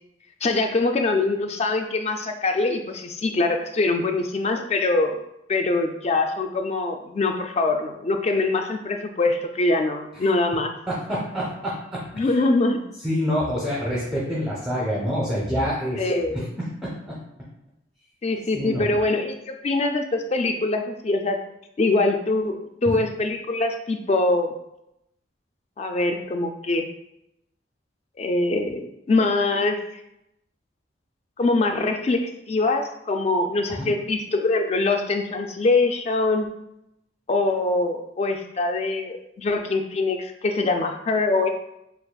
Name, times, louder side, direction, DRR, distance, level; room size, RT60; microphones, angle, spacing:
voice 1, 0.4-5.2 5.5-10.7 12.2-12.8 16.0-16.5 18.2-21.4 21.8-24.5 25.8-26.9 28.2-29.8 31.4-36.5 37.3-41.5, left 2 dB, 35° left, 6 dB, 0.3 m, -23 dB
voice 2, 10.9-12.2 13.0-16.0 16.3-17.2 18.5-18.9 33.8-33.9, equal, ahead, -6 dB, 0.7 m, -27 dB
6.6 x 2.4 x 2.2 m, 0.84 s
head